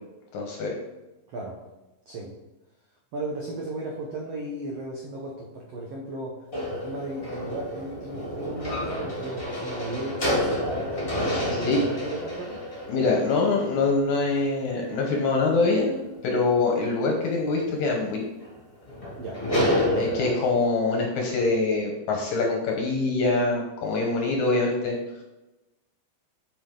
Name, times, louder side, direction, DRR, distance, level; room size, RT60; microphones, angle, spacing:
voice 1, 0.3-0.7 11.3-11.8 12.9-18.3 19.9-25.0, left 3 dB, 70° left, 0 dB, 2.1 m, -24 dB
voice 2, 1.3-1.6 2.1-2.4 3.1-12.6 19.2-19.4 19.9-20.1, right 2 dB, 80° right, -2 dB, 1.4 m, -36 dB
sound 1, 6.5-15.5 18.4-18.5 18.9-20.3, equal, 25° left, 1.4 m, -29 dB
7.9 x 5.0 x 3.8 m, 1.0 s
omnidirectional pair, 4.2 m